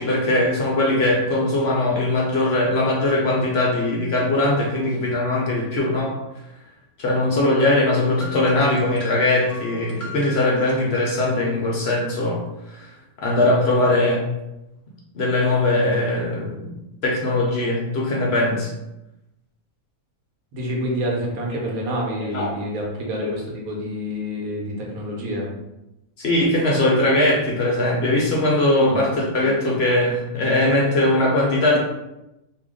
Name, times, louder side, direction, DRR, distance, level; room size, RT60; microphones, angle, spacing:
voice 1, 0.0-6.1 7.0-12.4 12.7-12.9 13.2-14.3 15.1-16.7 17.0-18.7 22.3-22.5 23.2-23.3 26.2-31.8, left 1 dB, 60° left, -2 dB, 0.8 m, -20 dB
sound 1, 8.1-10.8, left 1 dB, 30° left, 0.9 m, -37 dB
voice 2, 20.5-25.5 28.8-29.1, equal, 85° right, -1 dB, 1.3 m, -28 dB
2.7 x 2.4 x 3.6 m, 0.92 s
omnidirectional pair, 1.5 m